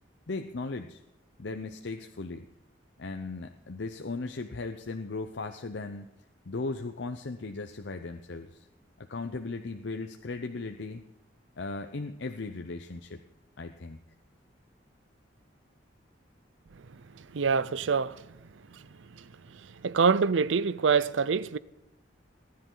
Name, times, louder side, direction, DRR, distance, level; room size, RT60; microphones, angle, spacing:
voice 1, 0.3-1.0 1.4-2.5 3.0-6.1 6.5-8.7 9.0-11.0 11.6-13.2 13.6-14.0, left 3 dB, 65° left, 0.7 m, -37 dB
voice 2, 17.3-18.2 19.8-21.6, right 5 dB, 85° right, 0.6 m, -25 dB
19.5 x 10.5 x 3.9 m
head